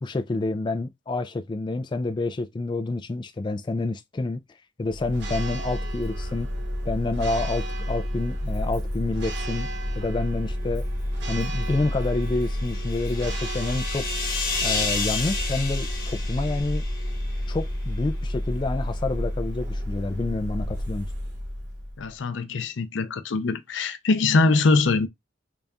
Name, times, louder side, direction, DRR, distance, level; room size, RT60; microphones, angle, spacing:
voice 1, 0.0-4.4 4.8-6.5 6.9-9.7 10.0-10.8 11.3-14.1 14.6-16.8 17.5-21.1, left 2 dB, 25° left, 0.3 m, -28 dB
Church bell, 4.9-22.1, equal, 65° right, 1.3 m, -30 dB
sound 1, 11.9-17.5, left 4 dB, 50° left, 1.1 m, -31 dB
voice 2, 22.0-25.1, left 3 dB, 80° left, 0.5 m, -22 dB
3.9 x 2.3 x 3.4 m
head